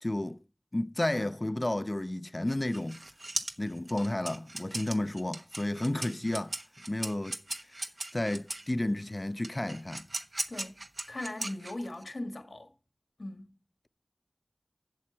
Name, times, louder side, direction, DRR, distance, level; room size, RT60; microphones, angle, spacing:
voice 1, 0.0-0.4 0.7-3.0 3.6-6.6 6.9-7.4 8.1-10.1, left 1 dB, 40° left, 0.5 m, -32 dB
sound 1, 2.5-8.7 9.4-12.0, right 2 dB, 70° right, 1.1 m, -38 dB
voice 2, 10.5-10.8 11.1-12.7 13.2-13.5, left 1 dB, 80° left, 1.6 m, -39 dB
7.7 x 7.1 x 6.9 m
wide cardioid pair, 45°, 0 cm